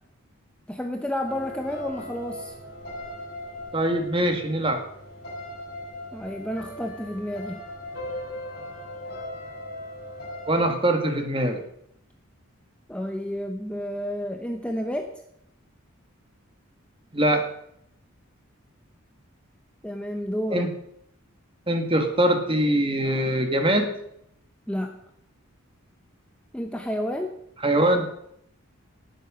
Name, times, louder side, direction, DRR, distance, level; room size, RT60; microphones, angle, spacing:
voice 1, 0.7-2.5 6.1-7.6 12.9-15.2 19.8-20.7 24.7-25.0 26.5-27.4, equal, 5° left, 4 dB, 0.9 m, -30 dB
sound 1, 1.2-10.7, left 1 dB, 50° left, 7.0 m, -39 dB
voice 2, 3.7-4.8 10.5-11.6 17.1-17.5 20.5-20.7 21.7-23.9 27.6-28.1, right 1 dB, 25° right, 5 dB, 1.9 m, -22 dB
19.5 x 7.7 x 6.3 m, 0.73 s
head